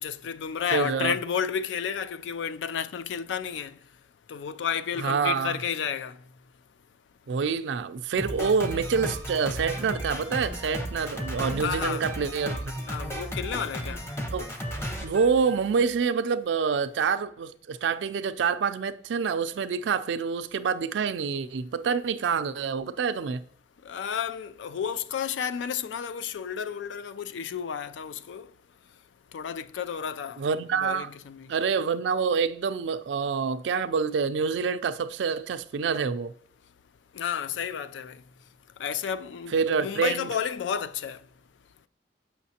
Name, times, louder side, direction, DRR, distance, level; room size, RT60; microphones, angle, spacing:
voice 1, 0.0-3.7 4.3-6.2 11.6-12.1 12.9-14.0 23.8-28.5 29.3-31.5 37.1-38.2 38.8-41.2, left 7 dB, 90° left, 0.3 m, -32 dB
voice 2, 0.7-1.2 5.0-5.6 7.3-12.8 14.3-14.5 15.0-23.4 30.4-31.1 31.5-36.3 39.5-40.3, right 5 dB, 85° right, 0.4 m, -27 dB
Drum kit, 8.2-16.0, equal, 15° left, 0.7 m, -34 dB
7.1 x 5.7 x 2.8 m
head